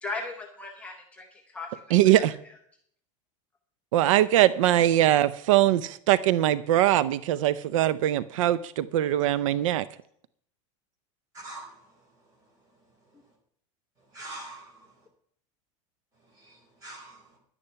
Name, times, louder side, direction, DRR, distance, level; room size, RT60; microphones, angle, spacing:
voice 1, 0.0-2.6, left 3 dB, 10° left, 0.9 m, -38 dB
voice 2, 1.9-2.3 3.9-9.8, right 13 dB, 80° right, 0.6 m, -22 dB
voice 3, 11.3-11.9 14.1-14.9 16.3-17.4, right 2 dB, 20° right, 4.4 m, -44 dB
11.0 x 9.9 x 5.6 m
supercardioid pair, 180°, 17 cm